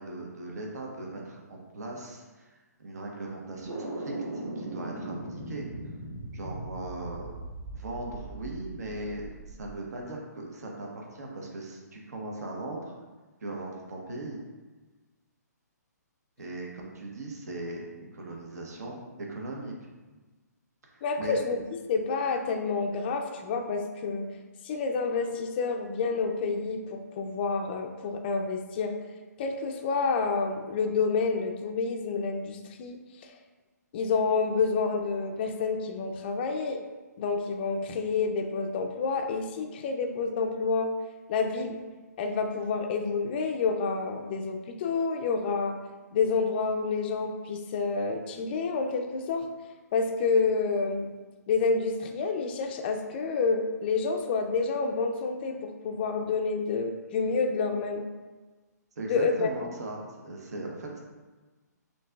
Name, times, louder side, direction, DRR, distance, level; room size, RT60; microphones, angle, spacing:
voice 1, 0.0-2.5 2.8-5.7 6.3-7.3 7.7-12.9 13.4-14.4 16.4-19.9 20.8-21.4 59.0-61.0, right 2 dB, 65° right, -1 dB, 0.9 m, -39 dB
sound 1, 3.6-9.7, right 2 dB, 40° right, 1.1 m, -39 dB
voice 2, 21.0-21.6 21.9-24.3 24.6-28.9 29.4-33.3 33.9-36.8 37.2-40.9 41.3-41.8 42.2-45.8 46.1-49.4 49.9-51.1 51.5-58.0 59.1-59.5, left 4 dB, 35° left, 3 dB, 0.4 m, -28 dB
6.3 x 2.8 x 2.3 m, 1.3 s
hypercardioid pair, 145°, 10 cm